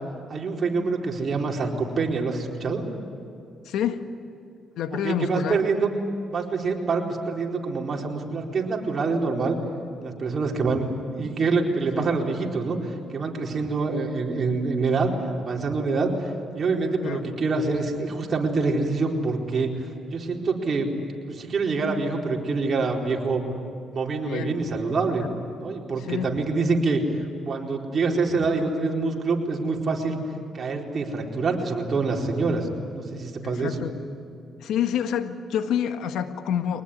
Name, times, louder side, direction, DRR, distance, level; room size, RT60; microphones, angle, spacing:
voice 1, 0.3-2.8 4.9-5.9 6.3-9.6 10.0-15.1 15.4-20.9 21.3-23.4 23.9-25.3 25.6-27.0 27.4-30.2 30.5-32.7 32.9-33.8, right 4 dB, 45° right, 0 dB, 4.4 m, -26 dB
voice 2, 3.6-4.0 4.8-5.6 12.0-12.1 17.0-17.2 24.2-24.5 25.2-25.3 26.1-26.3 33.4-33.9 34.6-36.8, left 9 dB, 80° left, 8 dB, 1.5 m, -27 dB
24.0 x 19.5 x 9.8 m, 2.6 s
cardioid pair, 90°, 0 cm